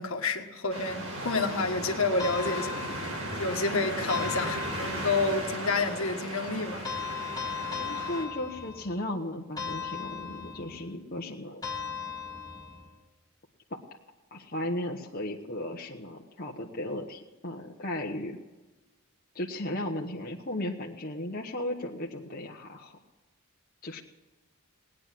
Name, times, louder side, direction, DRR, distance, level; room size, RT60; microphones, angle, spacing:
voice 1, 0.0-3.1 3.4-7.1, left 3 dB, 65° left, 4 dB, 1.6 m, -29 dB
sound 1, 0.7-8.2, right 1 dB, 70° right, 4.8 m, -36 dB
sound 2, 2.2-3.5 4.1-5.4 6.8-9.0 9.6-10.9 11.6-12.9, left 6 dB, 15° left, 1.9 m, -37 dB
voice 2, 7.8-11.6 13.7-13.8 14.3-18.4 19.3-23.0 23.8-24.0, left 1 dB, 40° left, -1 dB, 1.2 m, -35 dB
19.5 x 9.9 x 7.5 m, 1.2 s
head